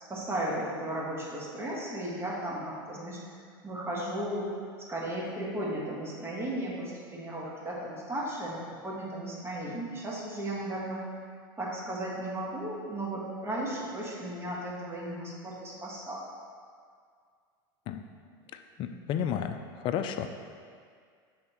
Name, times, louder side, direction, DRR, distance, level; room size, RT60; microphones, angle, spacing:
voice 1, 0.1-3.2 3.6-4.5 4.9-11.0 11.6-16.2, right 1 dB, 20° right, -4 dB, 1.4 m, -35 dB
voice 2, 18.8-19.6 19.8-20.3, left 8 dB, 40° left, 8 dB, 0.4 m, -31 dB
6.3 x 3.5 x 4.5 m, 2.1 s
supercardioid pair, 115°, 12 cm